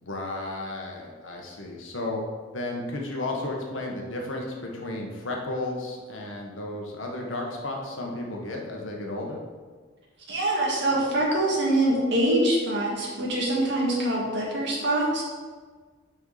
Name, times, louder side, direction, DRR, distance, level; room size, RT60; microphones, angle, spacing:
voice 1, 0.0-2.2 2.5-9.4, left 2 dB, 75° left, 0 dB, 1.3 m, -33 dB
voice 2, 10.3-15.2, right 1 dB, 60° right, -3 dB, 1.9 m, -24 dB
6.2 x 5.5 x 4.9 m, 1.5 s
head